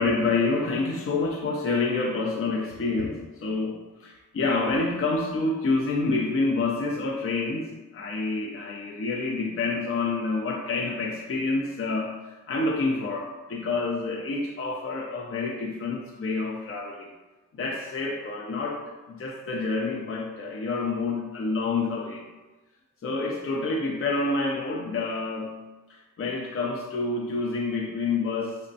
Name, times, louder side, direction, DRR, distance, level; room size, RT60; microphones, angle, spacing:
voice 1, 0.0-17.1 17.5-22.2 23.0-25.6 25.9-28.6, left 3 dB, 45° left, -1 dB, 0.5 m, -28 dB
5.1 x 2.1 x 2.6 m, 1.2 s
cardioid pair, 55°, 31 cm